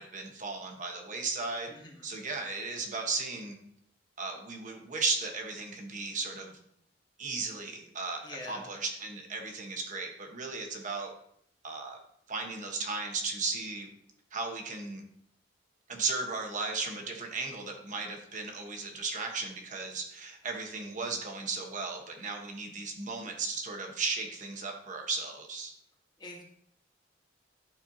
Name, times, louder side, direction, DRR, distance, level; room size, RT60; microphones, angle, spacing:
voice 1, 0.0-1.7 2.0-3.6 4.2-6.6 7.2-11.1 11.6-12.0 12.3-13.9 14.3-15.0 15.9-25.7, right 4 dB, 45° right, 2 dB, 1.2 m, -35 dB
voice 2, 1.7-2.1 8.2-8.7 26.2-26.4, left 2 dB, 25° left, -1 dB, 1.4 m, -44 dB
11.0 x 4.4 x 2.8 m, 0.71 s
head